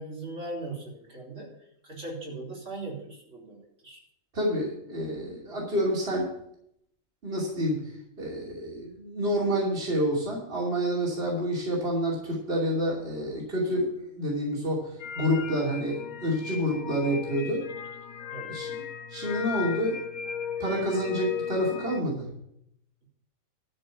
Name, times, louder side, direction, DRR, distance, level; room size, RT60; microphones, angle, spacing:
voice 1, 0.0-1.5 1.8-4.0 18.3-18.6, right 2 dB, 65° right, -3 dB, 3.5 m, -39 dB
voice 2, 4.3-6.3 7.2-7.9 8.2-17.7 18.5-18.8 19.1-20.0 20.6-22.3, equal, 45° right, -4 dB, 3.0 m, -28 dB
sound 1, 15.0-22.0, left 7 dB, 85° left, 1.3 m, -37 dB
12.5 x 5.4 x 8.4 m, 0.74 s
omnidirectional pair, 1.4 m